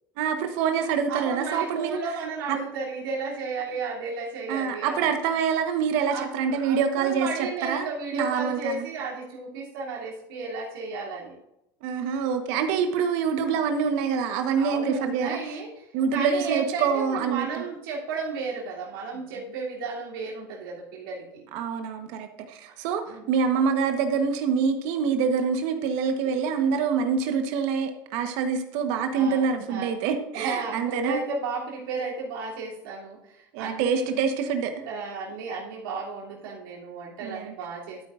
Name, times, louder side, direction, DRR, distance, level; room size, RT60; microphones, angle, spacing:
voice 1, 0.2-2.0 2.5-2.6 4.5-8.9 11.8-15.4 15.9-17.6 21.5-31.2 33.5-34.7 37.2-37.5, right 6 dB, 70° right, 6 dB, 1.2 m, -26 dB
voice 2, 1.1-5.1 6.1-11.3 13.5-13.6 14.5-15.7 16.1-21.4 23.0-23.3 26.2-26.5 29.1-30.0 30.3-34.1 34.8-38.0, right 4 dB, 85° right, -4 dB, 3.0 m, -33 dB
12.5 x 8.6 x 2.5 m, 0.83 s
supercardioid pair, 100°, 11 cm